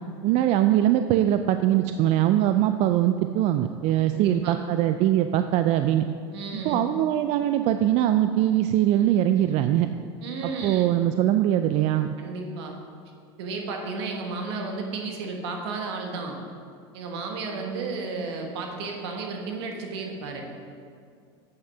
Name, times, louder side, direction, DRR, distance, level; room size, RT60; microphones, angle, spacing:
voice 1, 0.2-6.0 6.6-9.9 10.4-12.1, right 12 dB, 50° right, 9 dB, 0.4 m, -22 dB
voice 2, 4.1-4.6 6.3-6.8 10.2-10.8 12.2-12.7 13.4-16.4 16.9-20.4, right 4 dB, 75° right, 2 dB, 1.5 m, -33 dB
8.1 x 6.4 x 5.6 m, 2.4 s
hypercardioid pair, 100°, 14 cm